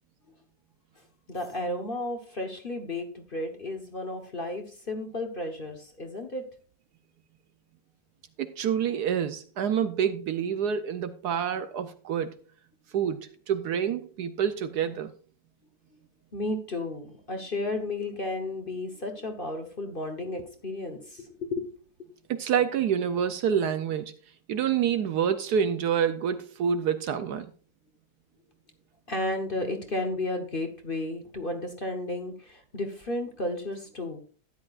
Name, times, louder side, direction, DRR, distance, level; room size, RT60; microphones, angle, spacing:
voice 1, 1.3-6.4 16.3-21.7 29.1-34.2, left 2 dB, 35° left, 1.1 m, -33 dB
voice 2, 8.4-12.4 12.9-15.1 22.3-24.1 24.5-27.5, right 8 dB, 65° right, 1.1 m, -27 dB
13.0 x 10.0 x 2.5 m
omnidirectional pair, 2.0 m